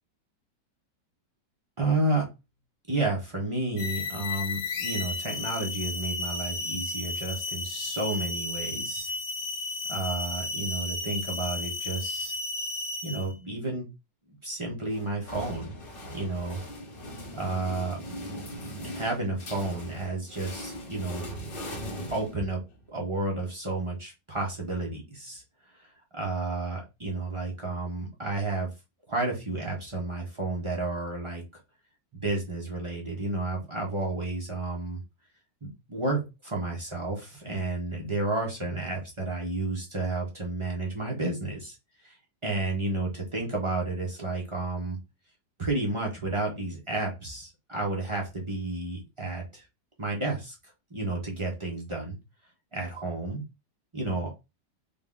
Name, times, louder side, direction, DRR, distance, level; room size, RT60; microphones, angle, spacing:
voice 1, 1.8-2.3 2.9-9.1 9.9-12.3 13.0-13.9 14.4-15.7 16.1-16.6 17.3-18.0 18.7-21.2 22.1-22.6 22.9-25.4 25.7-25.9 26.1-28.7 29.1-31.4 32.1-35.0 35.6-41.8 42.0-42.2 42.4-45.0 45.6-49.6 50.0-50.5 50.9-52.2 52.7-53.4 53.9-54.3, right 2 dB, 40° right, -1 dB, 0.4 m, -31 dB
sound 1, 3.8-13.3, left 3 dB, 80° left, 1.3 m, -33 dB
sound 2, 14.9-22.8, equal, 40° left, 0.8 m, -40 dB
3.6 x 2.2 x 3.6 m, 0.25 s
omnidirectional pair, 1.9 m